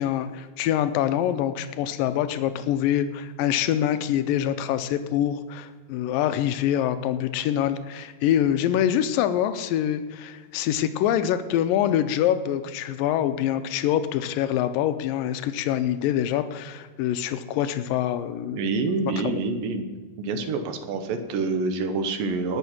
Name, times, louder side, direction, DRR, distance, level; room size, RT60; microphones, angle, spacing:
voice 1, 0.0-18.6, left 10 dB, 80° left, 11 dB, 2.0 m, -25 dB
voice 2, 18.5-19.9 20.2-22.6, right 3 dB, 70° right, 8 dB, 2.5 m, -27 dB
19.0 x 6.4 x 5.9 m, 1.4 s
omnidirectional pair, 4.5 m